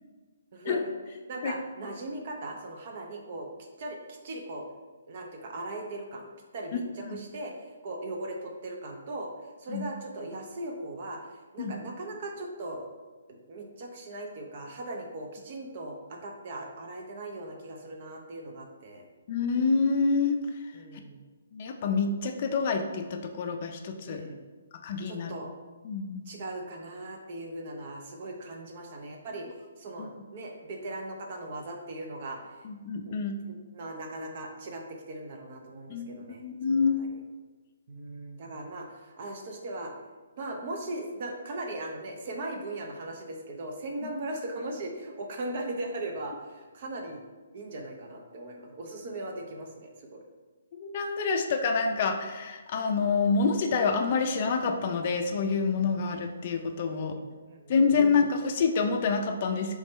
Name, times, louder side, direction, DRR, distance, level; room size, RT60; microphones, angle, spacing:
voice 1, 0.5-0.9 1.3-3.5 3.8-4.6 5.1-6.3 6.5-7.5 7.8-9.3 9.6-11.2 11.5-12.9 13.3-19.1 20.7-21.2 24.0-24.4 25.1-25.5 26.3-29.5 29.8-32.4 33.1-33.2 33.7-37.2 37.9-39.9 40.4-47.2 47.5-50.2 55.8-55.9 56.9-58.0, right 2 dB, 45° right, 1 dB, 0.6 m, -39 dB
voice 2, 19.3-20.7 21.5-24.2 24.8-25.3 25.8-26.3 30.0-30.1 32.6-33.4 35.9-37.0 44.0-44.1 50.7-57.2 57.7-59.8, left 4 dB, 40° left, 4 dB, 0.4 m, -27 dB
3.6 x 3.1 x 4.1 m, 1.3 s
hypercardioid pair, 160°, 0 cm